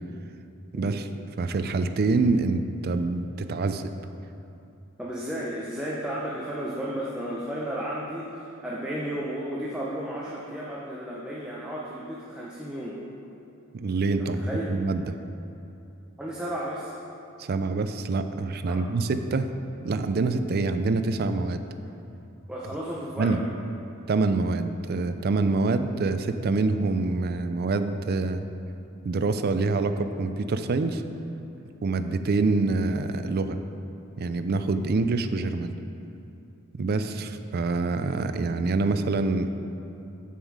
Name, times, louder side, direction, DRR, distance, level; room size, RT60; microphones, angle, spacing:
voice 1, 0.7-1.1 1.4-3.9 13.7-14.4 14.7-15.1 17.4-19.5 19.8-21.6 23.2-23.4 24.1-28.4 29.0-31.0 31.8-33.6 34.2-35.7 36.8-39.5, right 3 dB, 50° right, 9 dB, 0.4 m, -26 dB
voice 2, 5.0-12.9 14.2-14.7 16.2-16.9 18.6-18.8 22.5-23.4, right 1 dB, 5° right, -6 dB, 0.7 m, -33 dB
7.2 x 7.1 x 4.8 m, 2.9 s
head